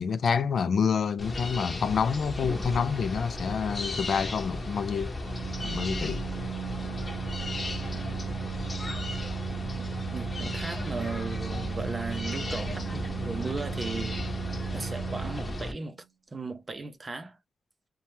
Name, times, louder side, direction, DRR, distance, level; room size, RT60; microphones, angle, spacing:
voice 1, 0.0-5.1 5.6-6.2, left 6 dB, 60° left, 0.3 m, -28 dB
sound 1, 1.2-15.7, left 1 dB, 25° left, 0.8 m, -35 dB
Organ, 5.2-16.0, right 7 dB, 80° right, 0.5 m, -36 dB
voice 2, 9.7-14.2 14.7-17.4, right 3 dB, 30° right, 0.6 m, -37 dB
2.7 x 2.2 x 3.1 m
wide cardioid pair, 165°, 0 cm